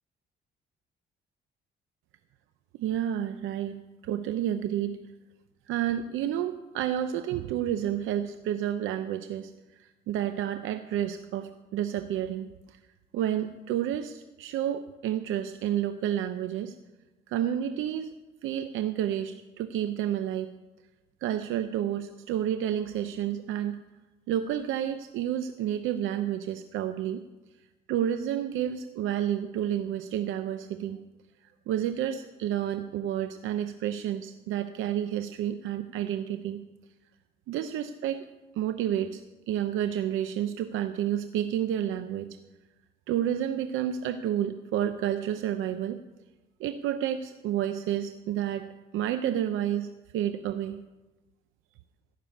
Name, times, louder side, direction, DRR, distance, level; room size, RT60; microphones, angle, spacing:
voice 1, 2.8-5.0 5.7-9.5 9.8-12.5 13.1-16.7 17.3-18.1 18.4-20.5 21.2-23.8 24.3-27.2 27.9-31.0 31.7-36.6 37.5-38.2 38.6-39.2 39.5-42.3 43.1-46.0 46.6-48.7 48.9-49.9 50.1-50.8, right 10 dB, 90° right, 9 dB, 0.7 m, -30 dB
16.0 x 6.9 x 8.8 m, 1.1 s
cardioid pair, 90°, 20 cm